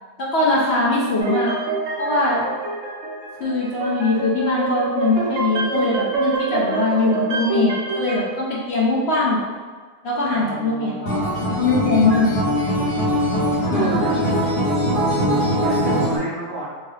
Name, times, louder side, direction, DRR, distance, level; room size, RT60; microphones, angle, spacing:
voice 1, 0.2-1.5 2.0-2.5 3.4-9.4 10.0-12.3 13.7-14.0, left 2 dB, 55° left, -5 dB, 0.8 m, -21 dB
sound 1, 1.2-8.2, right 3 dB, 65° right, 0.8 m, -26 dB
voice 2, 10.3-12.1 13.7-14.5 15.3-16.7, right 3 dB, 90° right, -7 dB, 0.5 m, -31 dB
Acoustic guitar, 11.1-16.2, equal, 80° left, 1.4 m, -21 dB
2.7 x 2.7 x 3.2 m, 1.5 s
omnidirectional pair, 1.7 m